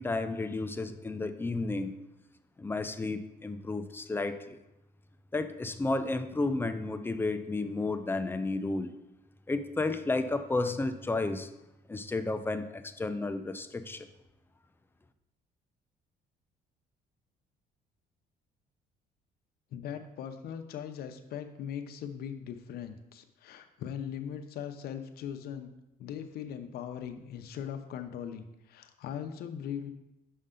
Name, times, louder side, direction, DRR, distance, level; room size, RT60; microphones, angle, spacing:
voice 1, 0.0-1.9 2.6-4.6 5.3-8.9 9.5-11.5 11.9-14.1, left 3 dB, 15° left, 9 dB, 0.4 m, -32 dB
voice 2, 19.7-25.7 26.0-29.9, left 8 dB, 65° left, 7 dB, 0.7 m, -40 dB
6.5 x 5.4 x 3.7 m, 0.93 s
cardioid pair, 110°, 17 cm